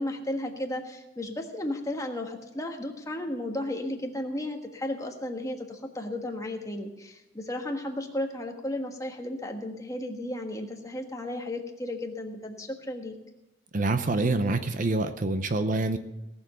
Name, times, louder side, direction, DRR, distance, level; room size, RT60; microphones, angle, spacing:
voice 1, 0.0-13.1, left 1 dB, 20° left, 3 dB, 1.4 m, -34 dB
voice 2, 13.7-16.0, right 2 dB, 45° right, 10 dB, 0.7 m, -26 dB
18.0 x 7.1 x 6.8 m, 0.96 s
head